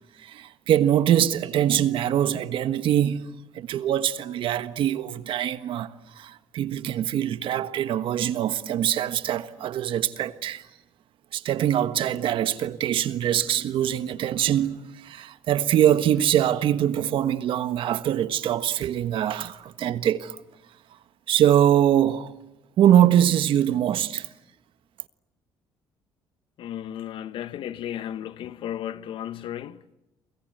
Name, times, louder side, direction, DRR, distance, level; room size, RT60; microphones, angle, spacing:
voice 1, 0.2-5.9 6.2-10.6 11.3-20.4 21.3-22.3 22.8-24.3, right 10 dB, 65° right, 1.4 m, -23 dB
voice 2, 26.6-29.9, left 10 dB, 65° left, 1.2 m, -34 dB
29.0 x 24.0 x 8.0 m
cardioid pair, 85°, 9 cm